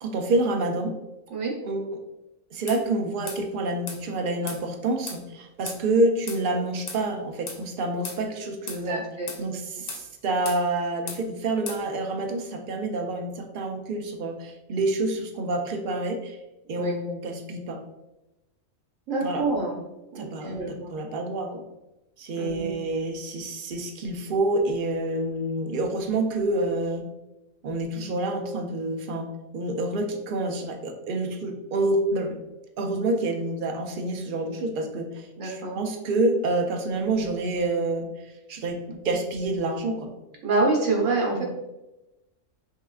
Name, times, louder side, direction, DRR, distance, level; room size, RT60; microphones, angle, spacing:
voice 1, 0.0-0.9 1.6-2.0 2.5-9.0 9.4-16.4 16.7-17.8 19.2-19.5 20.2-21.6 22.2-27.0 27.6-29.3 29.5-32.4 32.8-38.1 38.5-40.1 41.3-41.4, right 2 dB, 65° right, 4 dB, 0.5 m, -28 dB
sound 1, 2.7-2.8 3.3-3.4 3.9-4.0 4.5-4.6 5.1-5.2 5.7-5.8 6.3-6.4 6.9-7.0 7.5-7.6 8.0-8.2 8.7-8.8 9.3-9.4 9.9-10.1 10.5-10.6 11.1-11.2 11.7-11.8, left 4 dB, 65° left, 0.4 m, -36 dB
voice 2, 8.8-9.3 16.8-16.9 19.1-19.8 20.1-20.9 22.4-22.8 35.4-35.7 40.4-41.4, right 3 dB, 80° right, -1 dB, 1.4 m, -26 dB
5.4 x 2.4 x 2.4 m, 0.96 s
omnidirectional pair, 1.3 m